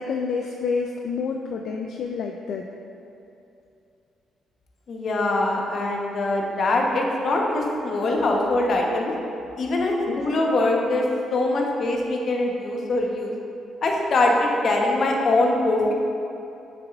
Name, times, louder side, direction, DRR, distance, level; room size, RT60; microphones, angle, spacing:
voice 1, 0.0-2.6 10.0-10.2, left 5 dB, 70° left, 2 dB, 0.3 m, -28 dB
voice 2, 4.9-9.1 9.6-13.3 13.8-15.9, left 2 dB, 55° left, 0 dB, 0.9 m, -23 dB
7.0 x 6.6 x 2.4 m, 2.7 s
cardioid pair, 90°, 0 cm